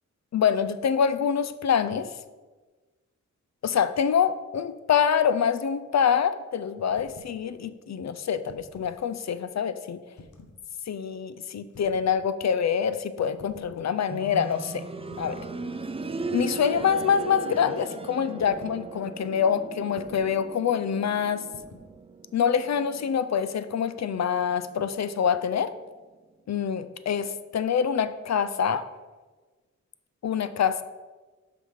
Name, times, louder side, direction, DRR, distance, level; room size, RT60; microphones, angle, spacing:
voice 1, 0.3-2.1 3.6-10.0 10.9-14.8 15.2-15.4 16.3-21.4 22.3-25.7 26.5-28.8 30.2-30.8, left 7 dB, 60° left, 13 dB, 0.5 m, -25 dB
sound 1, 6.9-7.4 8.3-9.0 10.1-10.6 11.7-12.1 13.4-13.8 15.1-15.5 16.7-17.2 18.4-18.8 19.9-20.3 21.5-21.9, left 3 dB, 80° left, 1.0 m, -49 dB
sound 2, 14.1-24.8 25.2-25.3 26.2-26.3, right 4 dB, 20° right, 0.4 m, -38 dB
6.4 x 5.1 x 5.6 m, 1.3 s
wide cardioid pair, 95°, 30 cm